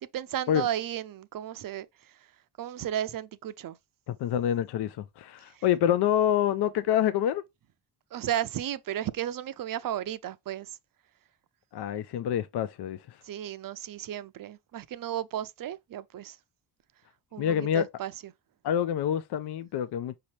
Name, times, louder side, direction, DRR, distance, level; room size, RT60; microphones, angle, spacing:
voice 1, 0.0-1.9 2.6-3.8 8.1-10.7 13.2-16.4 17.3-18.1, right 11 dB, 55° right, 0.5 m, -34 dB
voice 2, 4.1-7.4 11.7-13.2 17.4-17.9 18.6-20.2, left 10 dB, 75° left, 0.5 m, -27 dB
5.2 x 2.9 x 3.1 m
cardioid pair, 105°, 40 cm